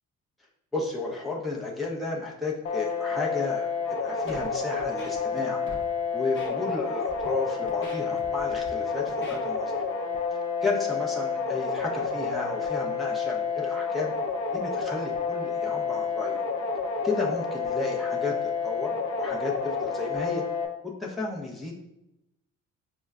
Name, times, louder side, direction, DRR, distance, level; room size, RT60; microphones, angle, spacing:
voice 1, 0.7-5.6 6.1-9.8 10.6-14.1 14.5-16.4 17.0-20.4 21.0-21.7, left 3 dB, ahead, -4 dB, 0.6 m, -33 dB
sound 1, 2.6-20.7, left 5 dB, 65° left, 0.6 m, -29 dB
Scratching (performance technique), 4.3-4.5 4.8-5.4 5.7-5.8 6.4-6.5 7.1-7.3 7.7-8.7 9.1-9.4, left 1 dB, 40° left, 0.9 m, -44 dB
5.1 x 2.1 x 2.3 m, 0.88 s
cardioid pair, 90°, 30 cm